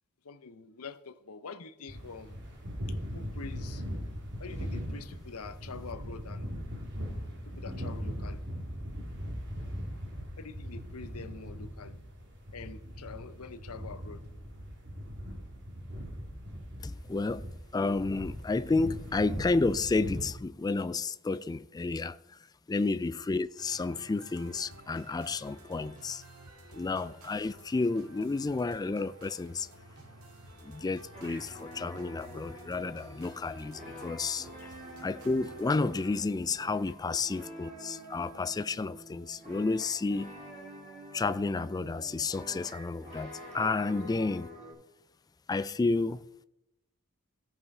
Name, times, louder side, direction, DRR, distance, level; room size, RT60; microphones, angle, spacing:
voice 1, 0.2-2.4 2.9-3.8 4.4-6.5 7.5-8.4 10.4-12.0 12.5-14.2 22.7-22.9 34.6-34.7 37.1-37.2 43.9-44.1, left 4 dB, 90° left, 0.8 m, -46 dB
sound 1, 1.9-20.3, equal, 55° right, 3.1 m, -40 dB
voice 2, 16.8-17.4 17.7-22.4 22.7-26.2 26.7-29.7 30.6-34.5 35.0-40.3 41.1-44.5 45.5-46.2, left 3 dB, 20° left, 0.3 m, -31 dB
sound 2, 23.5-36.2, right 1 dB, 80° right, 2.2 m, -52 dB
sound 3, 31.1-44.7, equal, 30° right, 4.0 m, -48 dB
16.5 x 5.6 x 4.8 m
head